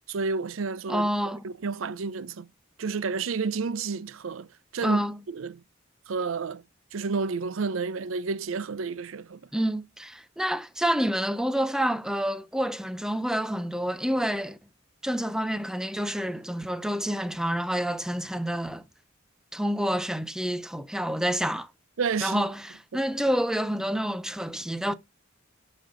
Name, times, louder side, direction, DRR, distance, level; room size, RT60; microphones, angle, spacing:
voice 1, 0.1-2.5 2.8-5.6 6.1-6.6 6.9-9.4 22.0-22.4 22.9-23.0, right 4 dB, 85° right, 0.5 m, -31 dB
voice 2, 0.9-1.4 4.8-5.2 9.5-14.6 15.0-18.8 19.5-21.7 22.2-24.9, equal, 5° right, 0.7 m, -28 dB
12.0 x 5.3 x 3.8 m
head